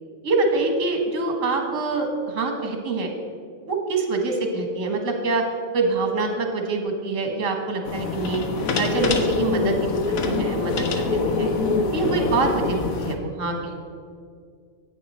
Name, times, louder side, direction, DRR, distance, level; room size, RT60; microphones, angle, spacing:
voice 1, 0.2-3.1 3.7-5.4 5.7-8.4 8.8-9.9 10.2-11.5 11.9-13.8, right 3 dB, 70° right, 3 dB, 1.6 m, -25 dB
sound 1, 7.9-13.1, left 4 dB, 90° left, 1.2 m, -24 dB
10.0 x 8.2 x 4.2 m, 2.1 s
omnidirectional pair, 1.4 m